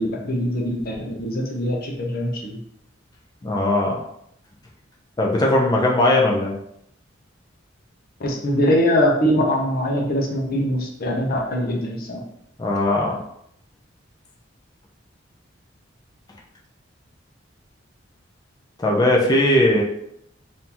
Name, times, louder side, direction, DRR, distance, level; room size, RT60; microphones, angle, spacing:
voice 1, 0.0-2.6 8.2-12.2, equal, 50° left, 0 dB, 0.7 m, -22 dB
voice 2, 3.4-4.0 5.2-6.5 12.6-13.2 18.8-19.8, left 1 dB, 20° left, -2 dB, 0.5 m, -19 dB
3.7 x 2.7 x 2.9 m, 0.75 s
head